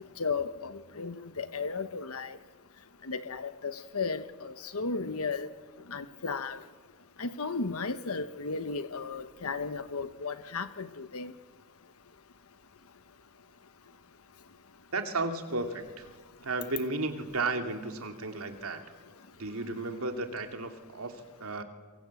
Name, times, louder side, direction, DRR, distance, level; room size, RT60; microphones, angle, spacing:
voice 1, 0.2-2.4 3.0-5.5 5.9-6.6 7.2-11.3, left 4 dB, 85° left, 11 dB, 1.1 m, -35 dB
voice 2, 14.9-16.1 16.4-18.8 19.4-21.6, right 3 dB, 80° right, 6 dB, 2.8 m, -34 dB
27.5 x 23.5 x 8.4 m, 1.4 s
head